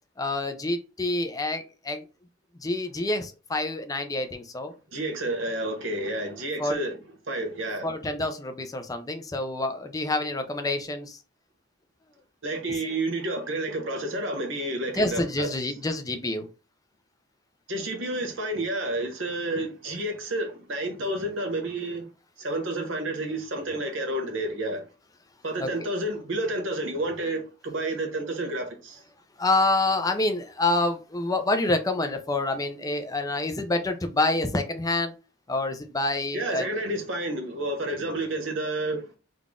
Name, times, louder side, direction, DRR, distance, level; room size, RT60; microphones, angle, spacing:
voice 1, 0.2-2.0 2.6-4.7 6.6-6.8 7.8-11.2 12.7-12.8 14.9-16.5 25.6-25.7 29.4-35.1 35.5-36.7, left 2 dB, 20° left, 0.5 m, -27 dB
voice 2, 4.9-7.0 7.3-7.9 12.4-15.5 17.7-22.1 22.4-24.8 25.4-29.0 36.3-39.1, right 1 dB, 70° right, 1.2 m, -30 dB
3.8 x 2.4 x 3.6 m
head